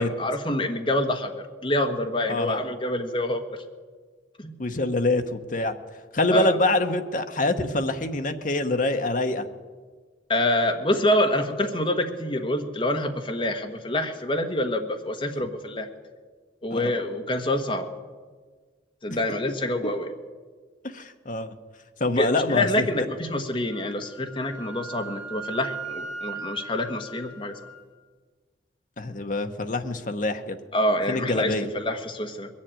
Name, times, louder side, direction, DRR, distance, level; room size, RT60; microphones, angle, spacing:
voice 1, 0.0-3.4 4.4-4.5 6.3-6.6 10.3-15.9 16.6-17.9 19.0-20.1 22.2-27.5 30.7-32.5, left 1 dB, 30° left, 4 dB, 1.3 m, -26 dB
voice 2, 2.3-2.6 4.6-5.8 6.1-9.5 16.7-16.9 19.1-19.2 20.8-21.5 22.0-23.1 29.0-30.6 31.1-31.7, left 2 dB, 45° left, 7 dB, 1.0 m, -25 dB
Wind instrument woodwind instrument, 23.7-27.8, right 4 dB, 5° right, 1.7 m, -38 dB
21.5 x 7.4 x 9.0 m, 1.5 s
head